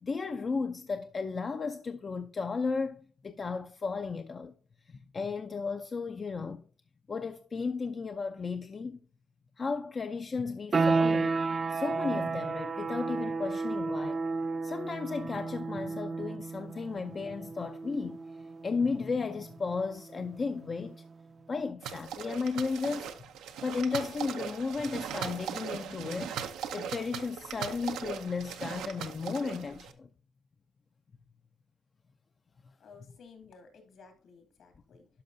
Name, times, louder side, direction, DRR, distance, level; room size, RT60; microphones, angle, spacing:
voice 1, 0.0-4.5 4.9-6.6 7.1-9.0 9.6-11.4 11.7-14.2 14.6-18.2 18.6-21.0 21.5-23.1 23.6-26.4 26.7-30.1, left 4 dB, 40° left, 0.5 m, -34 dB
sound 1, 10.7-21.2, right 4 dB, 40° right, 0.5 m, -33 dB
sound 2, 21.8-29.9, right 8 dB, 90° right, 0.7 m, -39 dB
voice 2, 32.8-35.1, left 5 dB, 70° left, 2.4 m, -55 dB
11.5 x 5.4 x 2.7 m
cardioid pair, 90°, 0 cm